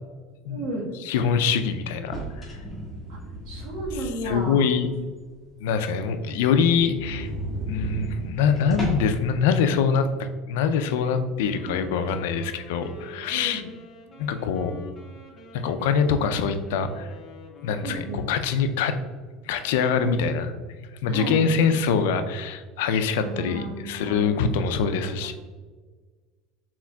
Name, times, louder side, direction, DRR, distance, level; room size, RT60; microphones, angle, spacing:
voice 1, 0.5-0.9 3.1-3.2 3.5-4.7 11.6-11.8 13.3-13.6 17.8-18.2 20.0-20.3 21.1-21.8 23.2-24.3 24.8-24.9 25.2-25.3, right 1 dB, 80° right, -2 dB, 1.3 m, -34 dB
voice 2, 1.1-2.5 4.2-4.9 5.6-7.3 7.7-10.1 10.5-13.6 14.2-14.7 15.5-17.1 17.6-19.0 19.5-20.5 21.0-25.3, left 6 dB, 85° left, 9 dB, 0.3 m, -24 dB
sound 1, 2.0-4.5 4.9-5.0 5.5-5.6 5.8-5.9 6.2-6.3 6.6-9.2, right 1 dB, ahead, 1.3 m, -34 dB
Wind instrument woodwind instrument, 11.5-18.7, left 2 dB, 30° left, 0.6 m, -46 dB
4.7 x 3.6 x 2.3 m, 1.4 s
supercardioid pair, 145°, 0 cm